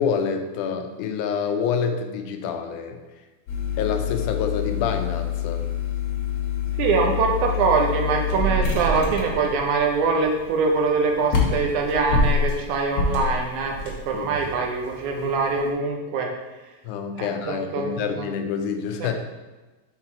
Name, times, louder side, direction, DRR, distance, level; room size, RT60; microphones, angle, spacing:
voice 1, 0.0-3.0 3.8-5.7 14.1-14.3 16.8-19.1, left 6 dB, 85° left, 6 dB, 2.0 m, -27 dB
sound 1, 3.5-15.7, left 4 dB, 70° left, 2.2 m, -27 dB
voice 2, 6.8-16.3 17.2-18.3 19.0-19.1, right 4 dB, 80° right, 2 dB, 2.2 m, -23 dB
6.2 x 4.0 x 4.1 m, 1.2 s
omnidirectional pair, 3.5 m